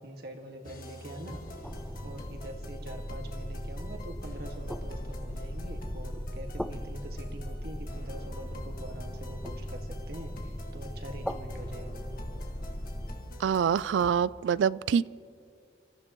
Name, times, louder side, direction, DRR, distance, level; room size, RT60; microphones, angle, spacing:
voice 1, 0.0-1.4 2.0-12.0, right 1 dB, 60° right, 1.8 m, -44 dB
sound 1, 0.6-14.1, left 1 dB, 50° left, 1.7 m, -46 dB
sound 2, 1.6-13.2, equal, ahead, 0.3 m, -38 dB
voice 2, 13.4-15.1, right 7 dB, 90° right, 0.3 m, -25 dB
29.5 x 14.5 x 3.0 m
head